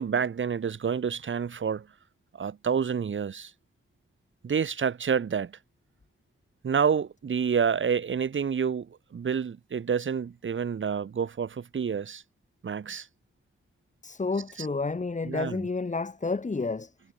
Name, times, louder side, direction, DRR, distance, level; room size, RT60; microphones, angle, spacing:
voice 1, 0.0-1.9 2.3-3.5 4.4-5.5 6.6-12.2 12.6-13.1 14.6-14.7 15.2-15.6, right 7 dB, 70° right, 5.6 m, -28 dB
voice 2, 14.0-16.9, left 4 dB, 35° left, 5.8 m, -30 dB
wide cardioid pair, 95°, 21 cm